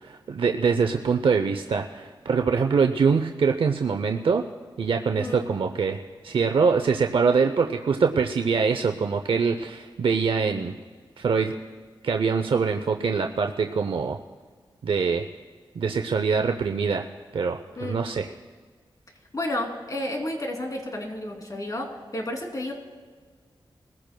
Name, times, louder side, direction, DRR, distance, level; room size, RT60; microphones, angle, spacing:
voice 1, 0.0-4.5 4.8-10.7 11.2-11.5 12.0-14.2 14.8-15.2 15.8-17.1 17.3-18.3, right 5 dB, 75° right, 5 dB, 0.6 m, -24 dB
voice 2, 5.2-5.5 17.8-18.0 19.3-21.9 22.1-22.7, left 1 dB, 40° left, 1 dB, 2.9 m, -31 dB
22.0 x 15.0 x 2.3 m, 1.5 s
cardioid pair, 65°, 9 cm